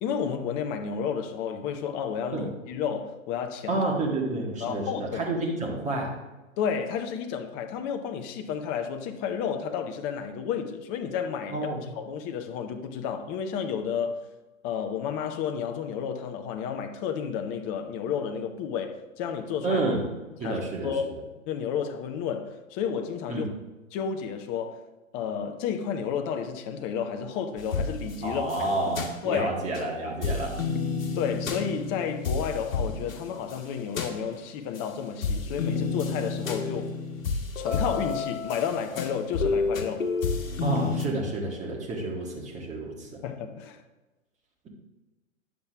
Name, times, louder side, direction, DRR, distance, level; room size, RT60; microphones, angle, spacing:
voice 1, 0.0-3.8 4.6-5.2 6.6-11.6 12.0-14.2 14.6-19.8 20.4-21.0 21.5-23.5 23.9-24.8 25.1-28.7 29.2-29.5 31.1-36.9 37.6-40.1 43.2-43.8, left 7 dB, 25° left, 0.6 m, -31 dB
voice 2, 3.7-6.1 11.5-11.9 19.6-20.0 20.4-20.9 23.3-23.5 28.2-30.5 40.6-43.1, right 2 dB, 15° right, 1.7 m, -29 dB
sound 1, 27.6-29.9 30.2-34.9 35.2-41.1, left 4 dB, 75° left, 1.3 m, -31 dB
9.7 x 7.3 x 3.4 m
hypercardioid pair, 125°, 41 cm